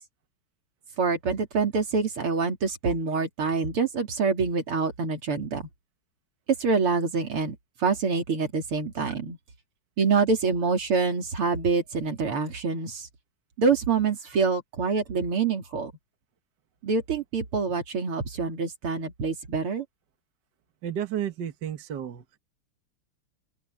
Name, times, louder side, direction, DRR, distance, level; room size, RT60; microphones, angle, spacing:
voice 1, 1.0-5.7 6.6-7.6 7.8-9.4 10.0-13.1 13.6-15.9 16.8-19.9, right 5 dB, 90° right, 3.8 m, -26 dB
voice 2, 20.8-22.4, right 9 dB, 55° right, 1.9 m, -32 dB
open air
omnidirectional pair, 2.4 m